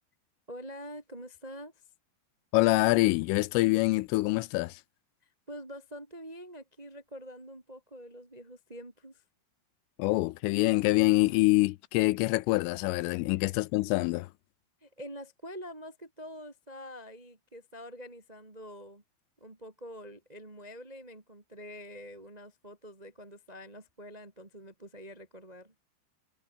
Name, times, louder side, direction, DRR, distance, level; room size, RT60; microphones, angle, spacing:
voice 1, 0.5-1.8 5.2-9.2 14.8-19.0 19.4-25.7, equal, 70° right, 0.4 m, -46 dB
voice 2, 2.5-4.8 10.0-14.3, left 21 dB, 85° left, 3.3 m, -25 dB
omnidirectional pair, 5.7 m